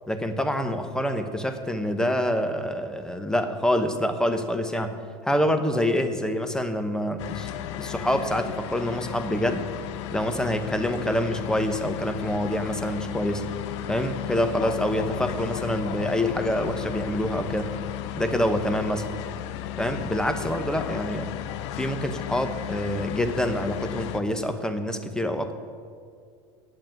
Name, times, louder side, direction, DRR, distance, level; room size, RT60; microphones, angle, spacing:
voice 1, 0.1-5.0 5.2-9.6 10.1-13.4 13.9-17.7 18.1-19.1 19.8-21.3 21.8-25.5, equal, 5° left, 8 dB, 1.0 m, -26 dB
sound 1, 7.2-24.2, left 12 dB, 70° left, 0.6 m, -34 dB
8.7 x 7.6 x 9.1 m, 2.2 s
hypercardioid pair, 95°, 16 cm